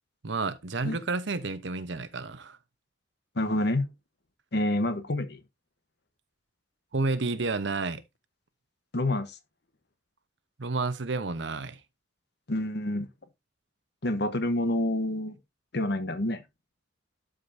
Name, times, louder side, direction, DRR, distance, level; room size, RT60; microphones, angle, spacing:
voice 1, 0.2-2.6 6.9-8.0 10.6-11.8, right 3 dB, 70° right, 0.9 m, -30 dB
voice 2, 3.3-3.9 4.5-5.4 8.9-9.4 12.5-13.1 14.0-15.4 15.7-16.4, left 1 dB, 60° left, 1.1 m, -28 dB
12.0 x 5.2 x 2.7 m
head